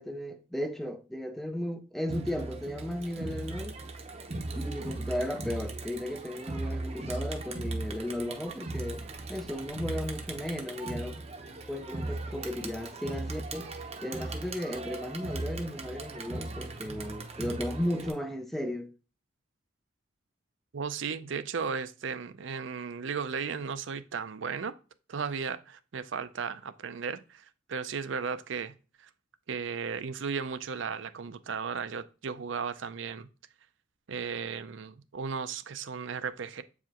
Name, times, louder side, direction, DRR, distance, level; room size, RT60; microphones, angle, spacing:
voice 1, 0.0-3.7 4.5-11.2 11.7-13.7 14.0-18.9, left 1 dB, ahead, 0.4 m, -35 dB
Crowd, 2.1-18.1, right 2 dB, 30° right, 0.7 m, -38 dB
voice 2, 20.7-24.7 25.1-28.7 29.0-29.1 29.5-33.3 34.1-36.6, right 6 dB, 65° right, 0.5 m, -35 dB
7.7 x 4.8 x 2.9 m
head